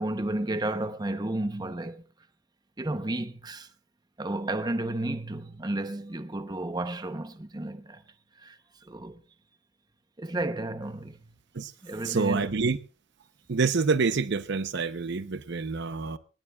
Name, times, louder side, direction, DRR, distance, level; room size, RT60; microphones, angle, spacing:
voice 1, 0.0-2.0 2.8-3.7 4.2-8.0 8.4-9.2 10.2-11.2 11.8-12.5, right 1 dB, 20° right, 0.7 m, -32 dB
voice 2, 12.0-12.8 13.5-16.2, right 4 dB, 55° right, 0.7 m, -27 dB
19.5 x 18.0 x 2.3 m
head